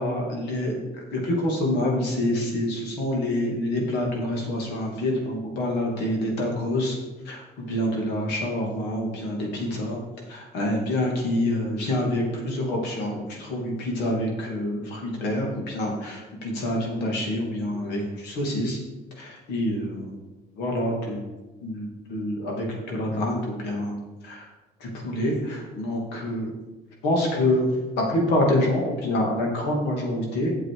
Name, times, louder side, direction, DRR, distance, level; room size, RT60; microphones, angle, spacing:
voice 1, 0.0-7.0 7.2-10.0 10.3-18.8 19.2-20.2 20.6-21.2 21.6-24.0 24.2-24.5 24.8-26.5 27.0-27.7 28.0-30.5, left 1 dB, 85° left, 0 dB, 2.6 m, -27 dB
8.4 x 7.5 x 5.0 m, 1.1 s
cardioid pair, 110°, 17 cm